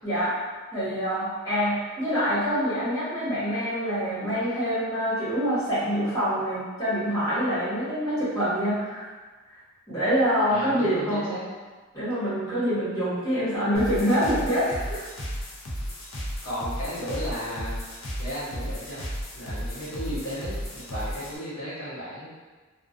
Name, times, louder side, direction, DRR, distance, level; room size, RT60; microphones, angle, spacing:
voice 1, 0.0-0.3 0.7-9.0 9.9-11.3 11.9-15.0, equal, 20° left, -13 dB, 1.1 m, -25 dB
voice 2, 10.5-11.4 12.2-12.3 16.4-17.8 18.2-19.0 19.3-22.3, equal, 90° left, -9 dB, 0.9 m, -34 dB
sound 1, 13.7-21.4, equal, 70° left, 0.5 m, -34 dB
2.3 x 2.2 x 2.4 m, 1.3 s
head